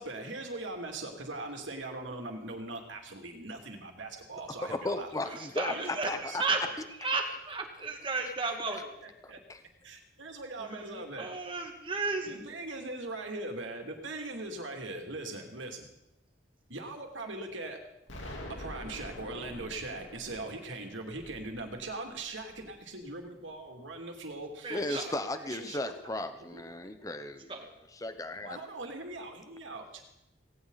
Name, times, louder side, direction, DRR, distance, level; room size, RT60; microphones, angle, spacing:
voice 1, 0.0-5.1 5.7-6.8 8.7-9.4 9.8-11.3 12.3-15.9 16.7-17.8 18.5-25.9 26.5-26.9 28.4-30.1, right 2 dB, 85° right, 3 dB, 2.7 m, -41 dB
voice 2, 4.6-6.4 7.0-7.1 9.2-9.6 24.7-28.6, left 2 dB, 20° left, 9 dB, 0.8 m, -36 dB
voice 3, 5.2-6.6 7.0-8.9 10.6-12.4 24.6-25.1 27.5-27.7, right 3 dB, 25° right, 3 dB, 2.0 m, -34 dB
Explosion, 18.1-22.9, left 1 dB, 85° left, 3.3 m, -46 dB
18.0 x 17.0 x 4.1 m, 0.86 s
head